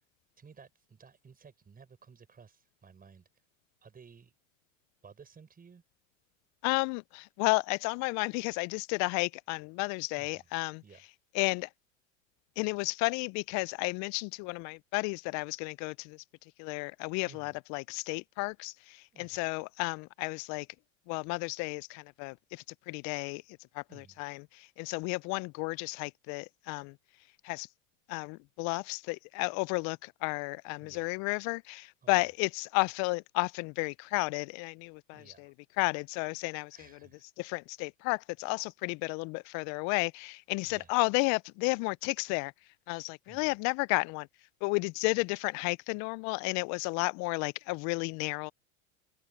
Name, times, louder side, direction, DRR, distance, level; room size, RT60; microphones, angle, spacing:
voice 1, 0.4-3.3 3.8-4.3 5.0-5.8 10.2-10.5 10.8-11.1 17.2-17.6 19.1-19.5 23.9-24.2 30.8-31.1 32.0-32.3 35.1-35.5 36.7-37.2 40.6-41.0 43.2-43.6, right 6 dB, 20° right, 7.1 m, -56 dB
voice 2, 6.6-10.8 11.3-11.7 12.6-16.2 16.6-20.7 21.1-23.4 23.8-24.4 24.8-26.9 27.4-27.7 28.1-36.8 37.4-42.5 42.9-44.3 44.6-48.5, left 29 dB, 45° left, 0.6 m, -32 dB
hypercardioid pair, 95°, 39 cm